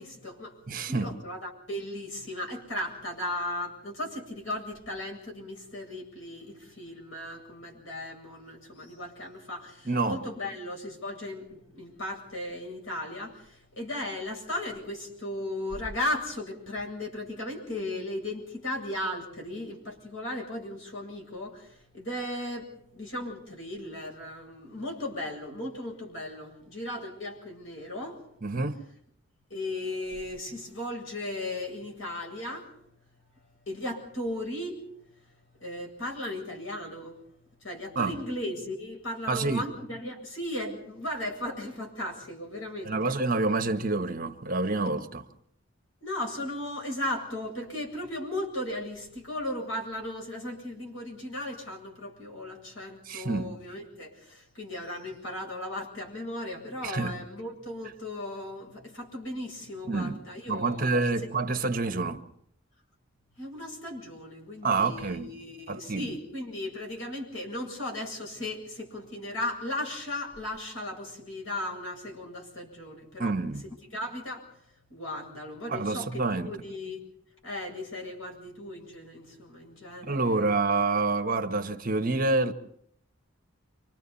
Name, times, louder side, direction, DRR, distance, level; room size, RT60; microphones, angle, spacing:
voice 1, 0.0-0.6 0.9-28.2 29.5-32.7 33.7-34.8 35.6-37.2 37.6-43.2 46.0-61.0 63.4-73.3 73.9-74.5 74.9-77.0 77.4-80.6, left 1 dB, 75° left, 7.9 m, -36 dB
voice 2, 0.7-1.1 9.8-10.2 28.4-28.8 37.9-38.2 39.3-39.6 42.8-45.3 53.1-53.5 56.8-57.2 59.9-60.2 60.5-62.2 64.6-65.3 65.7-66.1 73.2-73.6 75.7-76.5 80.1-82.5, right 3 dB, 45° right, 1.5 m, -27 dB
30.0 x 26.5 x 4.2 m
head